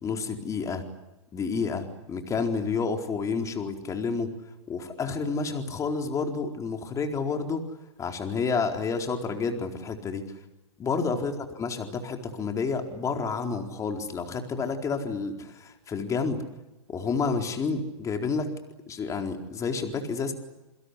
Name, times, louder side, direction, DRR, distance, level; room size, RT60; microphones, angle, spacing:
voice 1, 0.0-0.9 1.3-4.3 4.7-7.6 8.0-10.2 10.8-16.4 16.9-18.5 18.9-20.3, left 4 dB, 20° left, 4 dB, 4.2 m, -30 dB
28.0 x 25.0 x 8.3 m, 0.97 s
hypercardioid pair, 125°, 16 cm